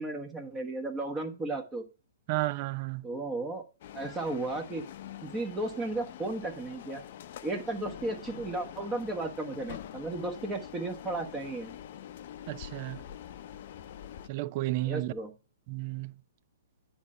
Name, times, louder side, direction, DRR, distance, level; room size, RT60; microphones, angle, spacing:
voice 1, 0.0-1.8 3.0-3.6 3.9-4.9 5.2-7.0 7.4-11.7 14.8-15.3, right 2 dB, 15° right, 1.2 m, -34 dB
voice 2, 2.3-3.1 12.5-13.0 14.3-15.1 15.7-16.1, right 18 dB, 40° right, 0.4 m, -32 dB
sound 1, 3.8-14.3, left 10 dB, 50° left, 0.6 m, -45 dB
9.6 x 4.4 x 4.8 m
figure-of-eight pair, 120°, 0 cm